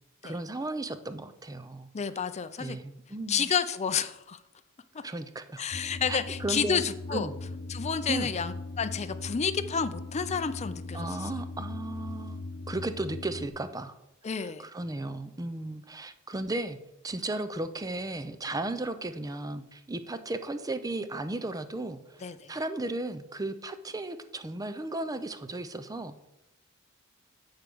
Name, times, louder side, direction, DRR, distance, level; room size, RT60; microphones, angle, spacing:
voice 1, 0.2-1.9 2.6-3.5 5.0-5.6 6.1-6.8 7.1-7.3 8.1-8.3 10.9-14.0 14.4-16.8 17.0-26.3, right 2 dB, 15° right, 11 dB, 0.5 m, -35 dB
voice 2, 1.9-2.8 3.3-4.4 4.9-5.0 5.6-7.3 7.7-11.3 14.2-14.7 22.2-22.6, left 6 dB, 30° left, 11 dB, 0.5 m, -30 dB
sound 1, 5.7-13.5, left 2 dB, 55° left, 0.9 m, -39 dB
8.9 x 4.7 x 6.1 m, 0.89 s
head